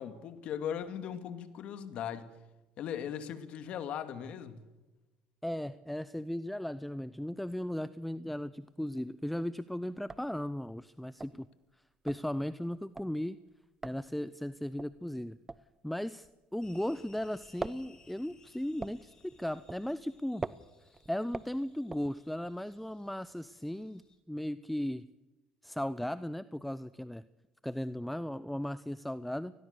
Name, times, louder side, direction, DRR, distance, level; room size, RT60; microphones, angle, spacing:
voice 1, 0.0-2.3 2.8-4.6, left 9 dB, 60° left, 2.3 m, -38 dB
voice 2, 5.4-11.5 12.0-13.4 13.8-15.4 15.8-20.4 21.1-24.0 24.3-25.1 25.6-27.2 27.6-29.5, left 1 dB, 5° left, 0.7 m, -36 dB
sound 1, 8.7-9.2 9.6-9.7 9.9-17.0 17.3-22.6, right 3 dB, 20° right, 1.0 m, -44 dB
sound 2, 16.6-24.2, left 4 dB, 30° left, 6.4 m, -63 dB
29.0 x 20.5 x 6.8 m
supercardioid pair, 85°, 2 cm